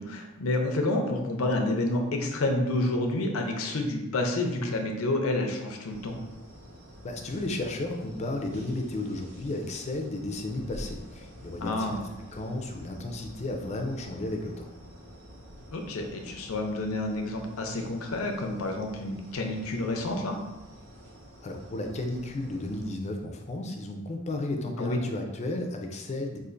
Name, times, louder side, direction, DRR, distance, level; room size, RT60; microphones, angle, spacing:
voice 1, 0.0-6.2 11.6-12.0 15.7-20.4 24.8-25.0, left 2 dB, 90° left, 3 dB, 0.6 m, -29 dB
sound 1, 5.9-22.9, equal, 85° right, 1.3 m, -48 dB
voice 2, 7.0-12.0 12.3-14.7 21.4-26.4, left 2 dB, 35° left, 3 dB, 0.4 m, -33 dB
5.0 x 2.5 x 2.5 m, 1.0 s
head